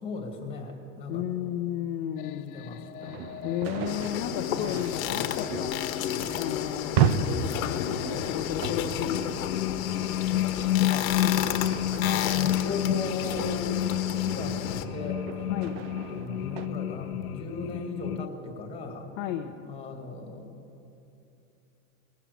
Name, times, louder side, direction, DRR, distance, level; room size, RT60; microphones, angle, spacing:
voice 1, 0.0-1.5 2.5-3.2 4.6-4.8 10.8-11.1 12.0-14.6 14.9-15.5 16.1-19.1 19.6-20.5, left 3 dB, 15° left, 1 dB, 2.0 m, -37 dB
voice 2, 1.1-2.6 3.4-5.8 6.3-9.8 15.5-15.9 19.2-19.6, left 11 dB, 40° left, 4 dB, 0.6 m, -34 dB
sound 1, 2.2-18.3, left 12 dB, 90° left, 0.6 m, -31 dB
sound 2, 3.0-16.7, right 7 dB, 45° right, 0.7 m, -35 dB
sound 3, 3.9-14.9, left 10 dB, 70° left, 1.1 m, -33 dB
19.0 x 7.3 x 8.3 m, 2.7 s
supercardioid pair, 155°, 43 cm